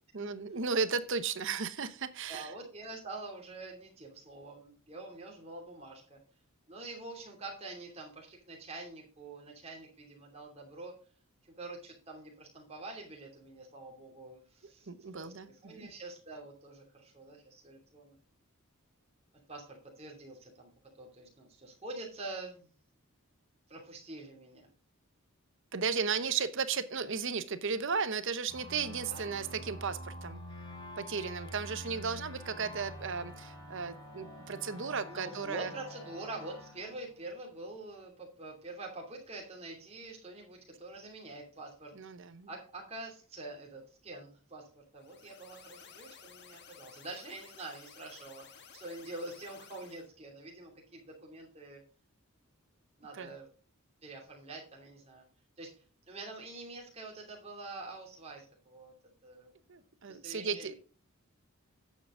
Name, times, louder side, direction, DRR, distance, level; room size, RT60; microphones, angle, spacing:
voice 1, 0.1-2.5 14.9-15.9 25.7-30.4 31.0-35.7 41.9-42.5 53.1-53.3 59.7-60.7, right 5 dB, 60° right, 13 dB, 0.8 m, -35 dB
voice 2, 2.3-6.2 6.7-10.9 11.4-18.1 19.5-20.7 21.0-22.7 23.7-24.7 29.1-29.4 35.1-41.9 42.5-51.8 53.0-53.5 54.0-55.2 55.6-55.7 56.1-58.9 59.2-59.5 60.1-60.7, right 2 dB, 30° right, 0 dB, 2.7 m, -46 dB
sound 1, 28.5-37.8, left 1 dB, 20° left, 3.7 m, -47 dB
sound 2, 45.0-50.1, left 7 dB, 50° left, 1.2 m, -55 dB
9.5 x 7.5 x 3.7 m, 0.38 s
head